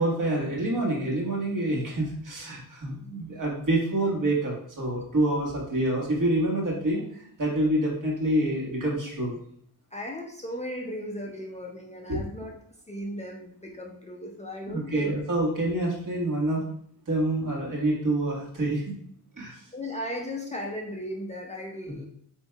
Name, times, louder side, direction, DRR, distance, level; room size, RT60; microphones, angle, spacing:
voice 1, 0.0-9.4 12.1-12.2 14.6-16.7 17.1-18.8 19.4-19.6 21.9-22.0, right 1 dB, 50° right, -2 dB, 1.5 m, -27 dB
voice 2, 9.9-12.5 12.9-15.1 19.7-22.1, left 1 dB, 20° left, -1 dB, 0.4 m, -36 dB
7.6 x 2.7 x 2.3 m, 0.64 s
wide cardioid pair, 140°, 39 cm